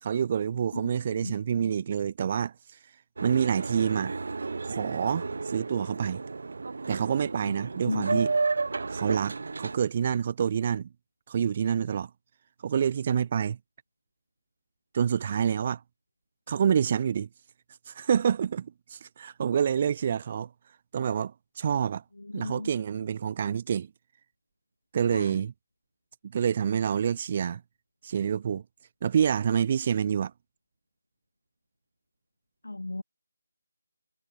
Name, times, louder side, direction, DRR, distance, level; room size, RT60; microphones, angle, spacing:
voice 1, 0.0-2.5 3.2-4.1 4.6-6.2 6.9-8.3 8.9-10.9 11.3-12.1 12.6-13.6 14.9-15.8 16.5-17.3 17.9-20.5 20.9-22.0 22.3-23.9 24.9-25.5 26.3-27.6 28.0-28.6 29.0-30.3, right 8 dB, 25° right, 1.0 m, -27 dB
Boat Water vehicle, 3.2-9.8, right 3 dB, 45° right, 1.7 m, -32 dB
voice 2, 7.8-8.2 22.3-22.7 25.1-25.4 32.6-33.0, left 2 dB, 60° left, 0.8 m, -33 dB
figure-of-eight pair, 155°, 0 cm